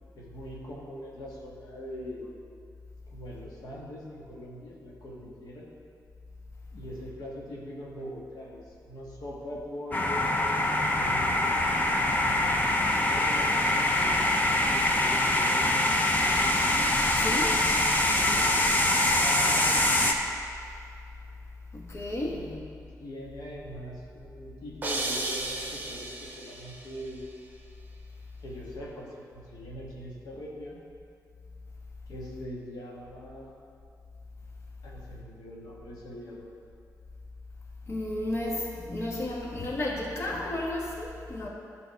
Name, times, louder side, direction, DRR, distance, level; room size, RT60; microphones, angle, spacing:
voice 1, 0.1-2.3 3.1-5.7 6.7-11.5 12.2-13.6 13.9-15.8 16.1-16.5 18.1-18.7 19.2-19.7 22.2-22.6 23.0-27.3 28.4-30.8 32.1-33.5 34.8-36.5, equal, 85° left, -4 dB, 1.6 m, -42 dB
sound 1, 9.9-20.1, left 1 dB, 25° left, 0.8 m, -24 dB
voice 2, 17.1-17.6 21.7-22.4 37.9-41.5, left 1 dB, 40° left, -3 dB, 1.3 m, -32 dB
sound 2, 24.8-26.9, right 2 dB, 25° right, 1.0 m, -34 dB
11.0 x 4.1 x 5.8 m, 2.4 s
cardioid pair, 90°, 7 cm